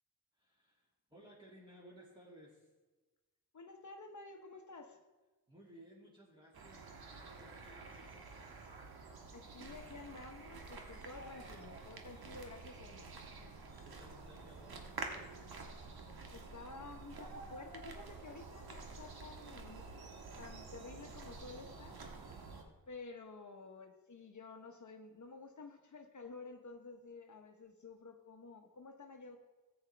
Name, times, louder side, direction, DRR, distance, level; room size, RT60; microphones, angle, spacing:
voice 1, 0.3-2.7 5.5-8.5 13.5-15.5, right 1 dB, 15° right, -6 dB, 2.2 m, -60 dB
voice 2, 3.5-5.0 9.3-13.2 16.3-19.9 20.4-22.1 22.9-29.4, left 3 dB, 50° left, 5 dB, 0.9 m, -52 dB
sound 1, 6.5-22.6, right 3 dB, 80° right, 1.3 m, -49 dB
14.0 x 8.8 x 3.3 m, 1.2 s
wide cardioid pair, 75°, 37 cm